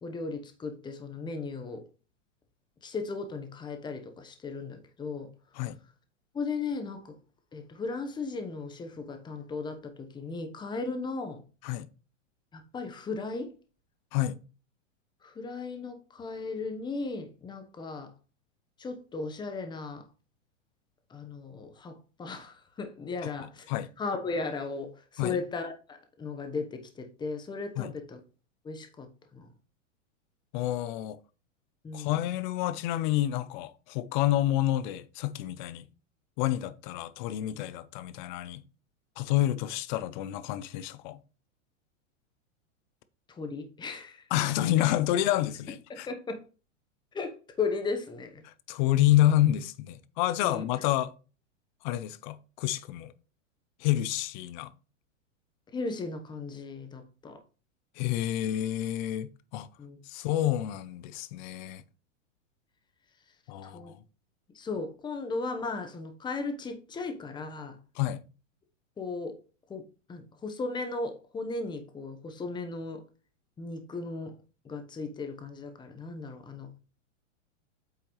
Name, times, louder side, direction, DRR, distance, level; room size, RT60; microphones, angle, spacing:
voice 1, 0.0-1.8 2.8-5.3 6.3-7.1 7.5-11.4 12.5-13.5 15.2-18.1 18.8-20.0 21.1-23.7 24.0-28.2 28.6-29.1 29.3-29.5 31.8-32.2 43.4-44.2 45.9-46.4 47.1-48.4 50.4-50.7 55.7-57.4 59.8-60.0 63.6-63.9 64.5-67.8 69.0-69.3 69.7-69.8 70.1-73.0 73.6-74.3 74.6-76.7, left 4 dB, 10° left, 1.0 m, -36 dB
voice 2, 30.5-31.2 31.9-35.8 36.4-38.6 39.2-41.2 44.3-46.1 48.5-51.1 51.8-53.1 53.8-54.7 58.0-59.7 60.1-61.8 63.5-64.0 68.0-68.2, left 14 dB, 35° left, 0.6 m, -28 dB
8.7 x 5.7 x 3.2 m
supercardioid pair, 145°, 39 cm